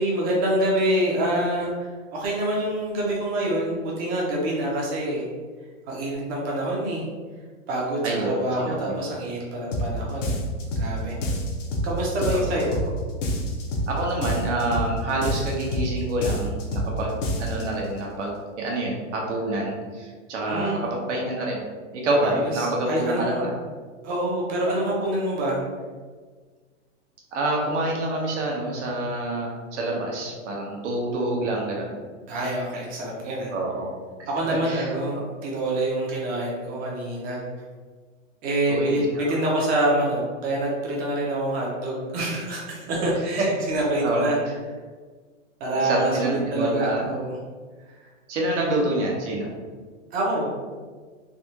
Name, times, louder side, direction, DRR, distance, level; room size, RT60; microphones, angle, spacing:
voice 1, 0.0-5.3 5.9-7.1 7.7-10.4 10.8-11.2 11.8-12.8 20.5-20.8 22.1-22.5 22.9-23.4 24.0-25.6 32.3-33.5 34.3-37.4 38.4-44.4 45.6-47.4 50.1-50.5, right 1 dB, 25° right, -3 dB, 0.7 m, -26 dB
voice 2, 8.0-9.1 12.3-12.4 13.9-18.3 18.6-21.6 21.9-23.5 27.3-31.9 33.5-33.9 34.2-35.2 38.7-39.2 44.0-44.3 45.7-47.0 48.3-49.5, right 1 dB, 65° right, -2 dB, 1.1 m, -27 dB
sound 1, 9.7-9.9 10.2-10.9 11.2-11.9 12.2-12.9 13.2-13.9 14.2-14.9 15.2-15.9 16.2-16.9 17.2-17.7, left 1 dB, 75° left, 0.8 m, -27 dB
3.5 x 2.3 x 2.8 m, 1.5 s
hypercardioid pair, 150°, 38 cm